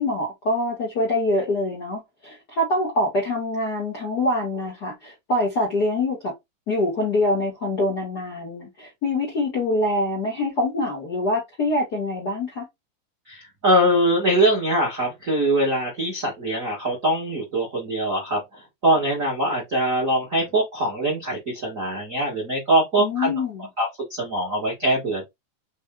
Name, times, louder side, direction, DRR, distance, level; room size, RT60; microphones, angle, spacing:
voice 1, 0.0-6.3 6.7-12.6 23.0-23.7, left 1 dB, 60° left, 1.0 m, -25 dB
voice 2, 13.3-23.3 23.8-25.2, right 1 dB, 85° right, 0.7 m, -23 dB
5.3 x 2.2 x 3.6 m
omnidirectional pair, 3.9 m